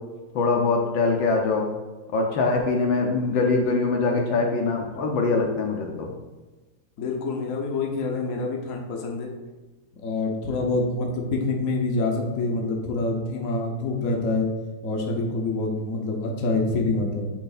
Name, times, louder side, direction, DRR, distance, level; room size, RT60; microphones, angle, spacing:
voice 1, 0.3-1.7 2.1-6.1, left 3 dB, 65° left, 2 dB, 1.5 m, -23 dB
voice 2, 7.0-9.3 9.9-14.5 14.8-17.3, left 3 dB, 50° left, 0 dB, 1.0 m, -26 dB
9.1 x 3.2 x 4.1 m, 1.2 s
omnidirectional pair, 2.4 m